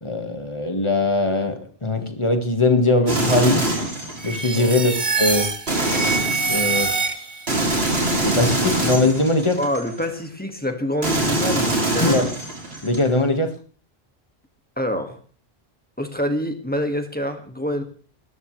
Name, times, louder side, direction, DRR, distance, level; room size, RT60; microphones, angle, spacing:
voice 1, 0.0-3.7 4.2-4.9 5.2-5.5 6.5-7.3 8.2-9.6 12.0-12.3 12.8-13.5, left 2 dB, 30° left, 6 dB, 1.7 m, -21 dB
sound 1, 3.1-4.6 5.7-6.9 7.5-10.1 11.0-13.0, right 2 dB, 75° right, 3.3 m, -24 dB
sound 2, 4.2-7.6, right 4 dB, 45° right, 1.4 m, -25 dB
voice 2, 9.6-12.3 14.8-15.2 16.0-17.8, equal, 10° left, 5 dB, 1.9 m, -26 dB
19.0 x 14.0 x 3.3 m, 0.43 s
omnidirectional pair, 1.1 m